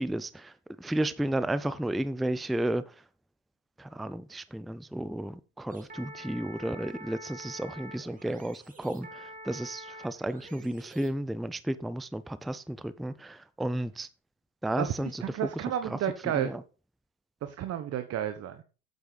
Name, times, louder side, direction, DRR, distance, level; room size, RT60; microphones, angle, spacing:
voice 1, 0.0-2.9 3.8-14.1 14.6-16.0 16.3-16.6, right 1 dB, ahead, 0.4 m, -33 dB
sound 1, 5.7-11.1, right 1 dB, 20° right, 2.3 m, -47 dB
voice 2, 14.8-16.6 17.4-18.6, right 10 dB, 40° right, 1.1 m, -32 dB
8.3 x 8.0 x 4.0 m
hypercardioid pair, 90°, 39 cm